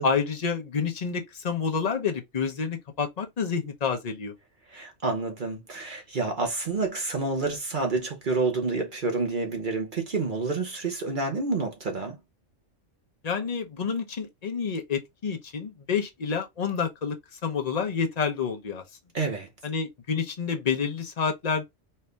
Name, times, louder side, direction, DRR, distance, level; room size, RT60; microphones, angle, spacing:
voice 1, 0.0-4.3 13.2-17.2 17.4-18.8 19.6-21.6, left 6 dB, 40° left, 0.8 m, -28 dB
voice 2, 4.7-12.2 19.1-19.5, right 3 dB, 45° right, 1.0 m, -28 dB
4.4 x 2.6 x 3.3 m
omnidirectional pair, 1.3 m